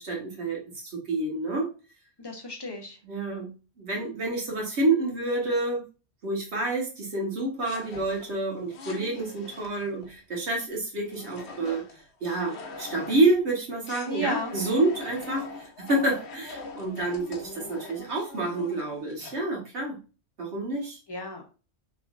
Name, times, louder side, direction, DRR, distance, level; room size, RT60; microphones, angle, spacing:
voice 1, 0.0-1.7 3.0-5.8 6.2-11.8 12.2-20.0 20.4-21.0, right 2 dB, 85° right, -1 dB, 1.5 m, -28 dB
voice 2, 2.2-3.0 14.0-14.6 21.1-21.5, equal, 25° left, 1 dB, 0.7 m, -33 dB
sound 1, 7.6-10.1 11.1-13.4 13.8-19.4, left 4 dB, 80° left, 1.0 m, -43 dB
3.2 x 3.1 x 2.4 m, 0.32 s
omnidirectional pair, 1.1 m